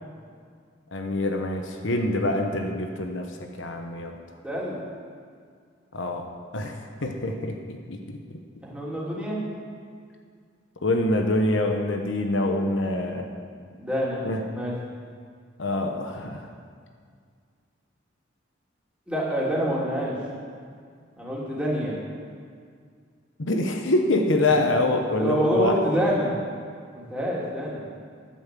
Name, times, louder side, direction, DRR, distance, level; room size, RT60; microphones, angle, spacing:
voice 1, 0.9-3.3 3.6-4.1 5.9-6.3 6.5-8.4 10.8-13.3 14.2-14.4 15.6-16.5 23.4-25.8, left 2 dB, 75° left, 4 dB, 1.1 m, -25 dB
voice 2, 4.4-4.8 8.6-9.4 13.8-14.2 14.5-14.7 19.1-20.1 21.2-21.9 25.2-26.3 26.9-27.8, equal, 5° right, -6 dB, 3.1 m, -26 dB
10.5 x 9.2 x 7.6 m, 2.1 s
head